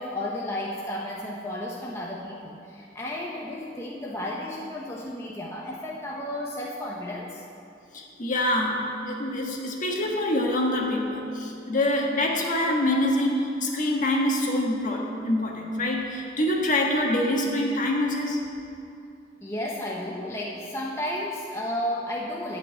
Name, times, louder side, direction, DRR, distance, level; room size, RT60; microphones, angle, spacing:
voice 1, 0.0-7.4 19.4-22.6, left 1 dB, 15° left, -3 dB, 0.9 m, -33 dB
voice 2, 7.9-18.4 21.7-21.8, left 1 dB, 45° left, 0 dB, 1.5 m, -25 dB
11.0 x 5.6 x 8.5 m, 2.5 s
head